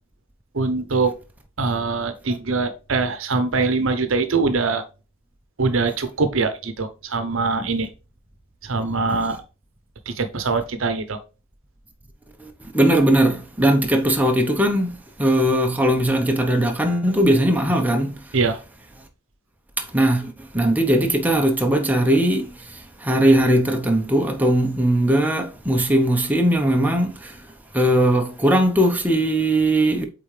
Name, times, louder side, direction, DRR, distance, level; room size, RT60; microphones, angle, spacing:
voice 1, 0.5-1.1 1.6-4.8 5.6-7.9 8.6-9.4 10.1-11.2 18.3-18.6, right 4 dB, 70° right, 0.9 m, -23 dB
voice 2, 12.7-14.9 15.2-18.1 19.8-22.5 23.0-27.3 27.7-30.0, right 1 dB, 10° right, 0.9 m, -19 dB
8.3 x 3.8 x 3.3 m
head